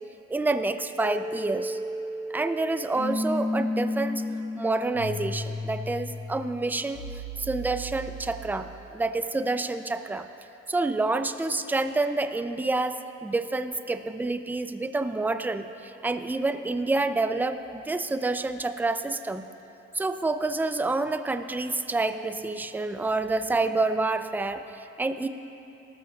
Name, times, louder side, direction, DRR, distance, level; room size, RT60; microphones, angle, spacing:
voice 1, 0.3-1.8 2.3-4.2 4.5-7.0 7.4-10.3 10.7-19.5 19.9-25.3, right 3 dB, 5° right, 9 dB, 0.4 m, -28 dB
sound 1, 0.9-8.8, left 1 dB, 80° left, 2.3 m, -33 dB
19.0 x 13.0 x 2.4 m, 2.9 s
cardioid pair, 90°, 30 cm